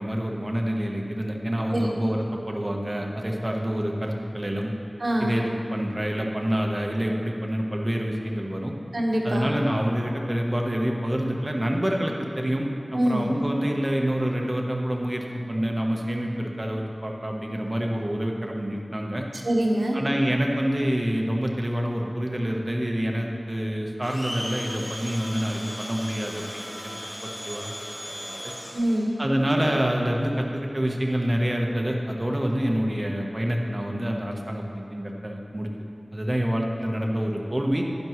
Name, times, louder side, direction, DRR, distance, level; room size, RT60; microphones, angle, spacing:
voice 1, 0.0-4.7 5.2-8.7 9.2-19.2 19.9-27.7 28.0-28.5 29.2-35.7 36.1-37.8, equal, 30° right, 0 dB, 1.1 m, -27 dB
voice 2, 5.0-5.3 8.9-9.4 12.9-13.3 19.4-20.0 28.7-29.1, right 1 dB, 75° right, -3 dB, 1.4 m, -24 dB
Domestic sounds home sounds, 24.0-29.1, equal, 45° left, 2.5 m, -37 dB
10.5 x 10.5 x 3.2 m, 2.5 s
wide cardioid pair, 45°, 0 cm